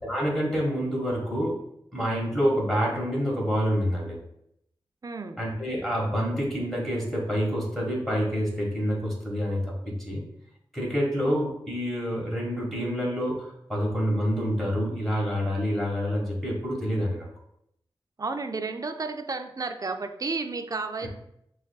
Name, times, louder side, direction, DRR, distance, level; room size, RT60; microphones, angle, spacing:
voice 1, 0.0-1.6 1.9-4.2 5.4-10.2 10.7-17.3 21.0-21.1, equal, 5° left, -4 dB, 1.4 m, -27 dB
voice 2, 5.0-5.4 18.2-21.1, right 3 dB, 40° right, 8 dB, 0.4 m, -32 dB
5.9 x 2.5 x 2.3 m, 0.75 s
wide cardioid pair, 55°, 9 cm